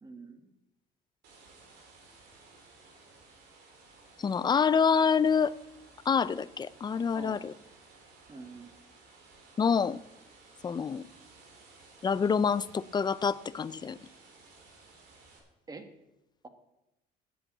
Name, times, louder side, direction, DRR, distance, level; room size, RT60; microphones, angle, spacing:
voice 1, 0.0-0.5 7.1-7.5 8.3-8.7 15.7-15.9, right 3 dB, 20° right, 1.5 m, -45 dB
sound 1, 1.2-15.4, right 3 dB, 80° right, 3.2 m, -57 dB
voice 2, 4.2-5.5 6.1-7.5 9.6-10.0 10.6-11.0 12.0-14.0, left 6 dB, 25° left, 0.4 m, -26 dB
8.6 x 7.9 x 8.6 m
cardioid pair, 110°, 17 cm